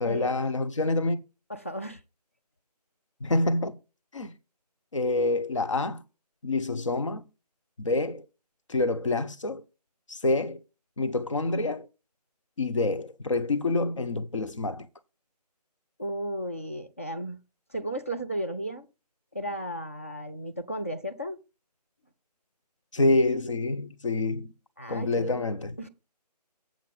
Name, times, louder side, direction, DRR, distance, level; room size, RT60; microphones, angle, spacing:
voice 1, 0.0-1.2 3.2-3.8 4.1-4.3 4.9-6.0 6.4-7.2 7.8-8.3 8.7-9.6 10.1-10.6 11.0-11.9 12.6-14.9 22.9-24.5 24.9-25.8, left 2 dB, 50° left, 1.0 m, -27 dB
voice 2, 1.5-2.0 16.0-17.4 17.7-18.9 19.3-21.4 24.8-25.4 25.8-25.9, equal, 20° left, 0.4 m, -34 dB
7.5 x 7.2 x 5.0 m
figure-of-eight pair, 155°, 21 cm